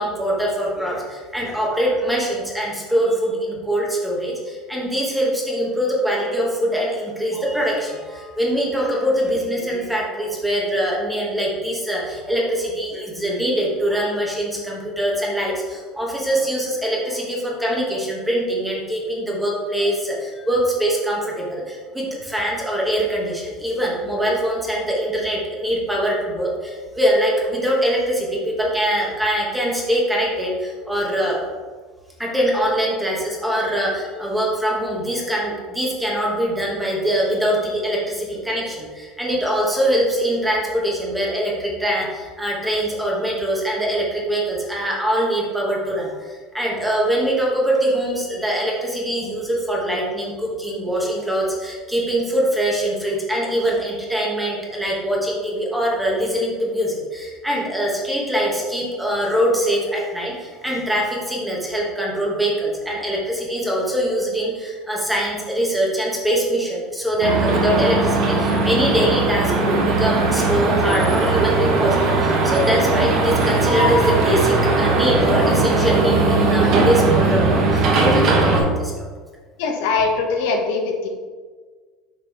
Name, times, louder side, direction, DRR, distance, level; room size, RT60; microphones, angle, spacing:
voice 1, 0.0-31.4 32.2-78.9, right 1 dB, 5° right, -3 dB, 1.0 m, -23 dB
sound 1, 67.2-78.6, right 3 dB, 40° right, 1.2 m, -18 dB
voice 2, 79.6-81.1, left 4 dB, 65° left, 2 dB, 1.0 m, -21 dB
6.2 x 5.3 x 3.4 m, 1.5 s
cardioid pair, 175°, 0 cm